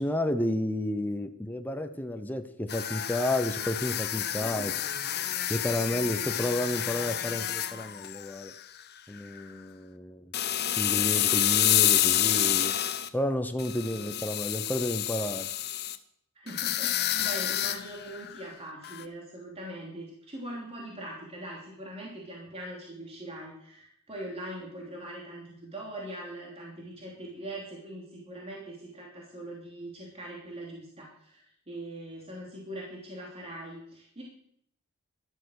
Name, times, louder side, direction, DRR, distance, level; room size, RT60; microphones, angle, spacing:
voice 1, 0.0-4.7 5.5-8.5 9.1-10.3 10.8-12.8 13.1-15.5, left 1 dB, 10° left, 7 dB, 0.8 m, -31 dB
sound 1, 2.7-8.8 9.2-9.4 10.3-13.1 13.6-16.0 16.5-18.4 18.8-19.0, left 12 dB, 50° left, 0.9 m, -29 dB
voice 2, 4.3-4.7 14.0-14.2 16.3-34.2, right 1 dB, 30° right, -2 dB, 3.1 m, -42 dB
12.5 x 12.0 x 6.5 m, 0.69 s
head